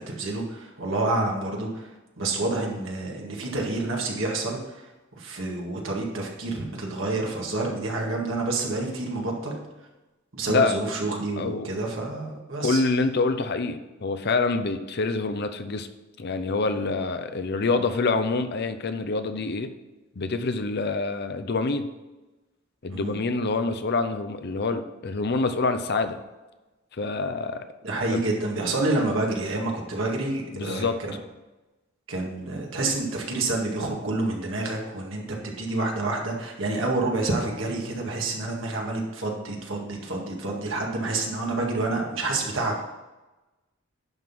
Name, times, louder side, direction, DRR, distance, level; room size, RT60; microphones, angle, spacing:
voice 1, 0.0-1.9 2.2-4.9 5.2-9.6 10.3-12.8 22.9-23.2 27.8-31.1 32.1-42.8, right 2 dB, 70° right, 0 dB, 1.9 m, -28 dB
voice 2, 11.4-11.7 12.6-15.9 16.2-19.7 20.2-21.9 22.8-26.2 27.0-27.6 28.1-28.2 30.5-31.0, left 3 dB, 55° left, 9 dB, 0.7 m, -26 dB
11.0 x 3.8 x 6.0 m, 1.1 s
head